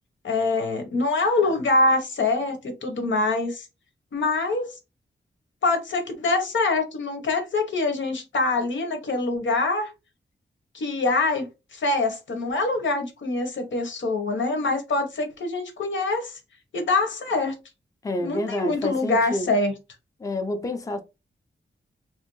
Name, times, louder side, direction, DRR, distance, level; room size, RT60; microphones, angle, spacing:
voice 1, 0.2-3.7 4.1-4.7 5.6-9.9 10.7-16.4 16.7-17.5 18.2-19.7, left 3 dB, 90° left, 0.9 m, -24 dB
voice 2, 18.0-19.5 20.2-21.0, left 2 dB, 20° left, 0.5 m, -28 dB
3.0 x 2.5 x 3.0 m
wide cardioid pair, 115°, 19 cm